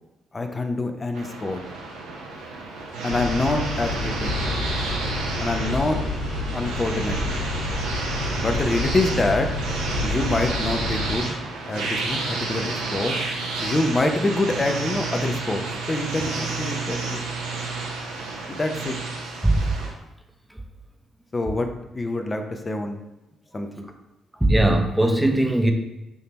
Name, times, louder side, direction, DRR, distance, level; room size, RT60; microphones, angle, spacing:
voice 1, 0.3-1.6 3.0-4.3 5.4-6.0 6.5-7.3 8.3-9.5 10.0-11.4 11.7-13.2 13.6-17.2 18.5-18.9 21.3-21.7 21.9-23.0 23.5-23.9, left 2 dB, 30° left, 5 dB, 0.6 m, -26 dB
sound 1, 1.1-19.9, right 3 dB, 85° right, 0.6 m, -31 dB
sound 2, 3.1-11.2, left 2 dB, 90° left, 1.2 m, -29 dB
voice 2, 24.4-25.7, right 1 dB, 10° right, 4 dB, 0.7 m, -19 dB
3.6 x 2.8 x 4.1 m, 0.94 s
hypercardioid pair, 50°, 0 cm